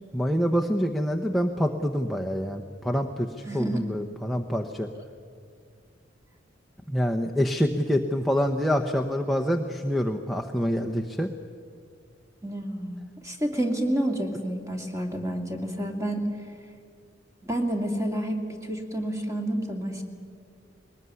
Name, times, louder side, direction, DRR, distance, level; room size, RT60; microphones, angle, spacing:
voice 1, 0.1-4.9 6.9-11.3, equal, ahead, 1 dB, 0.9 m, -26 dB
voice 2, 3.4-3.8 12.4-16.3 17.4-20.0, right 1 dB, 15° right, 3 dB, 2.7 m, -29 dB
21.5 x 19.5 x 9.6 m, 2.1 s
head